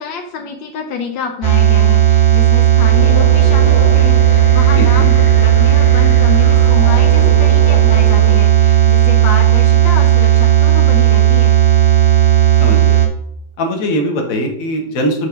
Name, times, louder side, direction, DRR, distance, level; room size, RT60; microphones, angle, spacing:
voice 1, 0.0-11.5, left 6 dB, 80° left, 4 dB, 1.6 m, -27 dB
sound 1, 1.4-13.1, right 12 dB, 45° right, 1.0 m, -11 dB
sound 2, 2.8-8.3, right 2 dB, 15° left, 1.2 m, -23 dB
voice 2, 4.8-5.1 12.6-13.0 13.6-15.3, equal, 50° left, 2 dB, 1.6 m, -20 dB
6.4 x 3.5 x 5.7 m, 0.71 s
omnidirectional pair, 2.1 m